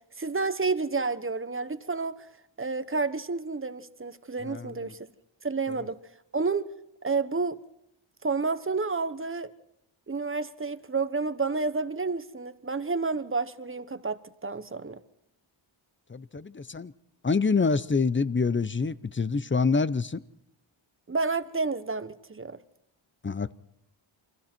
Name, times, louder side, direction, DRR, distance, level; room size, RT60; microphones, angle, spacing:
voice 1, 0.2-2.3 2.6-5.0 5.4-6.0 6.3-6.7 7.0-7.6 8.2-9.5 10.1-15.0 21.1-22.6, right 4 dB, 25° right, 1.1 m, -30 dB
voice 2, 4.4-4.9 5.7-5.9 16.1-16.9 17.2-20.2 23.2-23.5, left 4 dB, 25° left, 0.7 m, -27 dB
29.0 x 24.5 x 4.5 m
wide cardioid pair, 95°, 48 cm